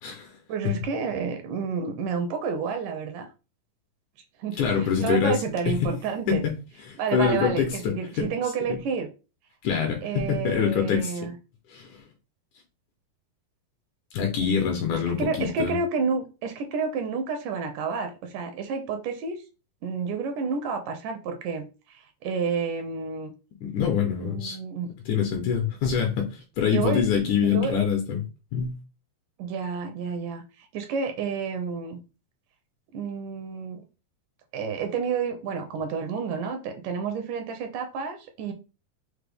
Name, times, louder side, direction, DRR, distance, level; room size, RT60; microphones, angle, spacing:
voice 1, 0.5-3.3 4.4-6.4 7.0-9.1 10.0-11.3 14.9-19.4 19.8-23.3 24.2-24.9 26.7-27.0 27.4-27.8 29.4-32.0 32.9-33.9 34.5-38.5, right 5 dB, 80° right, 2.1 m, -30 dB
voice 2, 4.6-5.4 5.7-5.9 6.3-6.4 6.9-8.3 8.7-8.8 9.6-11.3 11.7-12.0 14.1-15.8 23.6-24.6 25.1-28.3 28.5-28.8, left 7 dB, 75° left, 1.9 m, -25 dB
5.9 x 2.1 x 3.3 m
omnidirectional pair, 3.9 m